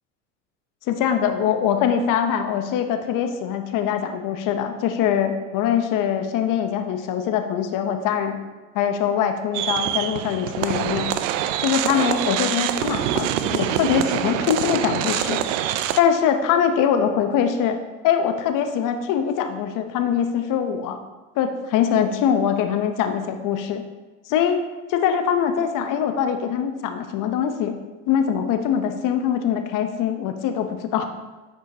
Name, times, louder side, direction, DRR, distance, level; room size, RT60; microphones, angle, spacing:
voice 1, 0.9-8.4 8.7-11.1 11.6-15.4 16.0-17.8 18.0-21.0 21.4-23.8 24.3-24.6 24.9-27.7 28.1-31.1, left 8 dB, 55° left, 7 dB, 0.9 m, -23 dB
sound 1, 9.5-16.0, right 11 dB, 80° right, 0.5 m, -25 dB
9.2 x 4.9 x 2.8 m, 1.2 s
hypercardioid pair, 80°, 37 cm